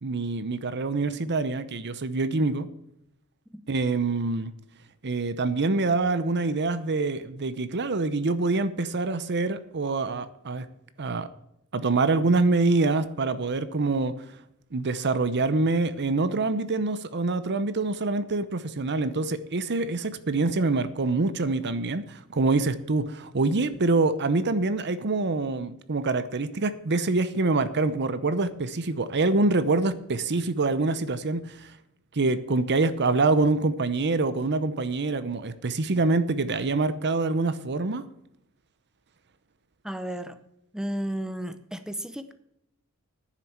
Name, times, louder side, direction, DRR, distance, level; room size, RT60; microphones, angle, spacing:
voice 1, 0.0-2.7 3.7-4.5 5.0-10.6 11.0-11.3 11.7-14.2 14.7-31.7 32.1-38.0, right 3 dB, 50° right, 14 dB, 0.8 m, -25 dB
voice 2, 39.8-40.4 40.7-42.3, right 1 dB, 5° right, 10 dB, 0.7 m, -33 dB
10.0 x 7.5 x 7.2 m, 0.78 s
head